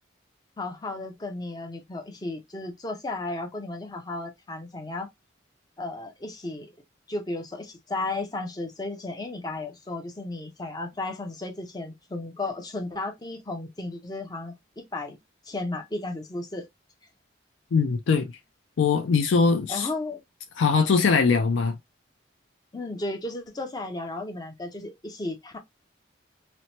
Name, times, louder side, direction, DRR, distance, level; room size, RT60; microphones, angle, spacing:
voice 1, 0.6-5.1 5.8-6.7 7.1-15.2 15.4-16.6 19.7-20.2 22.7-25.6, left 2 dB, 20° left, 0.5 m, -34 dB
voice 2, 17.7-18.3 18.8-19.9 20.6-21.8, left 5 dB, 70° left, 0.4 m, -21 dB
2.8 x 2.1 x 2.8 m
head